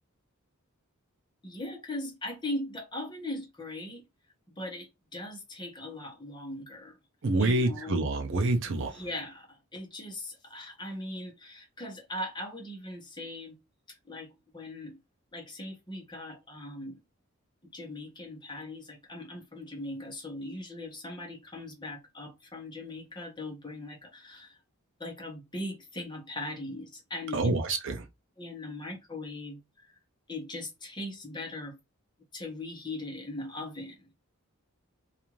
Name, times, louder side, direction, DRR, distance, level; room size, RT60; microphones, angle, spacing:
voice 1, 1.4-4.0 4.6-7.0 7.4-8.0 8.6-13.6 13.9-15.0 15.3-17.0 17.7-24.6 25.0-27.5 28.4-29.9 30.3-31.8 32.3-34.1, left 1 dB, 20° left, 0.9 m, -40 dB
voice 2, 7.2-9.0 27.3-28.1, right 2 dB, 55° right, 0.5 m, -27 dB
2.5 x 2.4 x 3.0 m
head